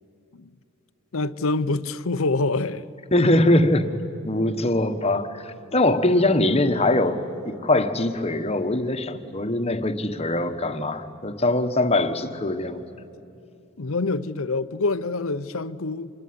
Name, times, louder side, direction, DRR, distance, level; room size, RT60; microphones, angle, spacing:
voice 1, 1.1-2.9 13.8-16.1, left 3 dB, 70° left, 14 dB, 0.8 m, -26 dB
voice 2, 3.1-3.9 4.2-7.2 7.6-12.8, left 1 dB, 30° left, 8 dB, 1.3 m, -22 dB
27.0 x 22.0 x 9.6 m, 2.7 s
head